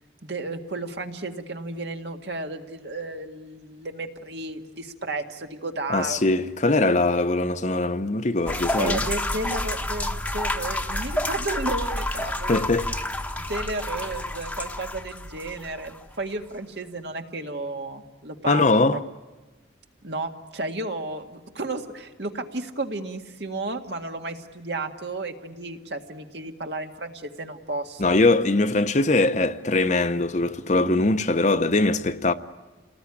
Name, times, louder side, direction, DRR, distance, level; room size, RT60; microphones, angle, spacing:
voice 1, 0.2-6.2 8.8-12.6 13.4-18.8 20.0-28.1, right 2 dB, 65° right, 1.9 m, -33 dB
voice 2, 5.9-9.0 12.5-12.8 18.4-19.0 28.0-32.3, left 2 dB, 40° left, 0.9 m, -21 dB
sound 1, 8.5-16.0, left 1 dB, 10° left, 1.1 m, -29 dB
28.5 x 19.5 x 9.9 m
head